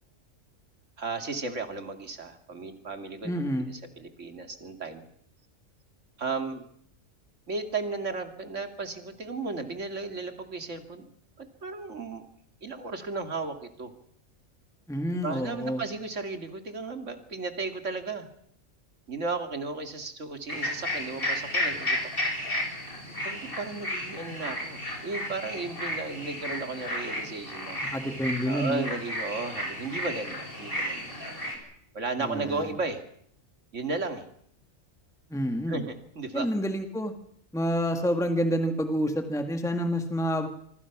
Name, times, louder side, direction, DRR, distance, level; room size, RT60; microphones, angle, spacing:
voice 1, 1.0-3.3 3.7-5.0 6.2-6.6 7.5-11.1 11.4-12.3 12.6-13.9 15.2-18.3 19.1-22.0 23.2-27.8 28.5-31.2 31.9-33.0 33.7-34.3 35.7-36.5, right 3 dB, 70° right, 6 dB, 2.8 m, -34 dB
voice 2, 3.2-3.7 14.9-15.8 27.9-28.9 32.2-32.7 35.3-35.8 36.3-37.1 37.5-40.5, equal, ahead, 6 dB, 1.7 m, -28 dB
sound 1, 20.5-31.6, left 1 dB, 45° left, 6.4 m, -33 dB
25.5 x 25.0 x 6.0 m, 0.67 s
omnidirectional pair, 1.3 m